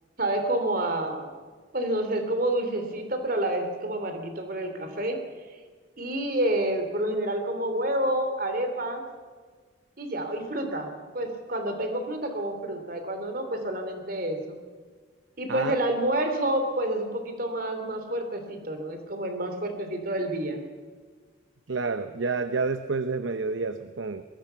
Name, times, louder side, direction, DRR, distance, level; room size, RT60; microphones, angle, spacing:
voice 1, 0.2-1.3 1.7-5.2 6.0-9.0 10.0-14.6 15.4-20.6, right 1 dB, 50° right, 6 dB, 3.2 m, -28 dB
voice 2, 21.7-24.2, right 4 dB, 80° right, 10 dB, 0.8 m, -29 dB
22.5 x 20.5 x 5.8 m, 1.5 s
head